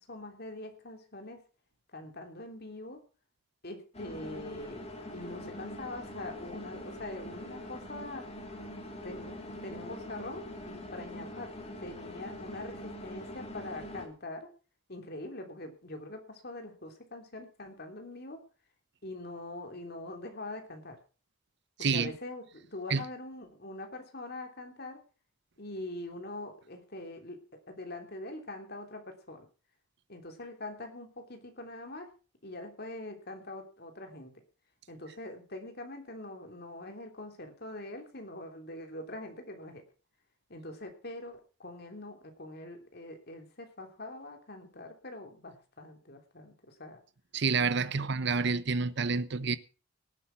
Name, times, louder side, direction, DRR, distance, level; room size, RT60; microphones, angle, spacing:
voice 1, 0.1-1.4 1.9-3.0 3.6-4.8 5.1-8.3 9.0-11.5 11.8-14.5 14.9-18.4 19.0-21.0 21.9-25.0 25.6-29.5 30.1-32.1 32.4-34.3 34.9-39.8 40.5-47.0 47.9-48.1 49.4-49.5, left 2 dB, 55° left, 3.3 m, -43 dB
sound 1, 3.9-14.1, left 1 dB, 35° left, 3.0 m, -43 dB
voice 2, 21.8-22.1 22.9-23.0 47.3-49.6, right 4 dB, 60° right, 0.8 m, -28 dB
18.5 x 8.6 x 5.8 m
head